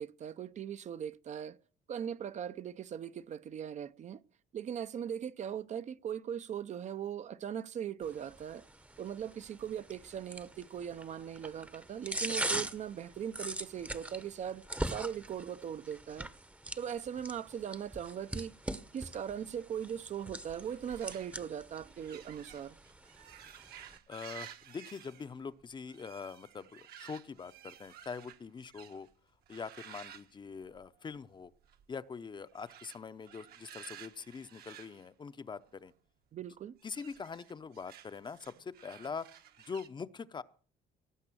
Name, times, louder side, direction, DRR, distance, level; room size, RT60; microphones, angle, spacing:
voice 1, 0.0-1.6 1.9-4.2 4.5-8.6 9.0-16.3 16.8-18.5 18.9-22.8 36.3-36.8, right 9 dB, 45° right, 0.6 m, -40 dB
sound 1, 8.0-24.0, right 1 dB, 10° right, 0.8 m, -42 dB
sound 2, 20.3-29.1 29.5-31.2 31.4-31.8 32.5-35.9 36.8-39.9, right 10 dB, 65° right, 1.3 m, -54 dB
voice 2, 24.1-29.1 29.5-31.5 31.9-35.9 36.8-39.3 39.7-40.4, left 5 dB, 25° left, 0.6 m, -43 dB
18.0 x 7.8 x 6.2 m
cardioid pair, 110°, 17 cm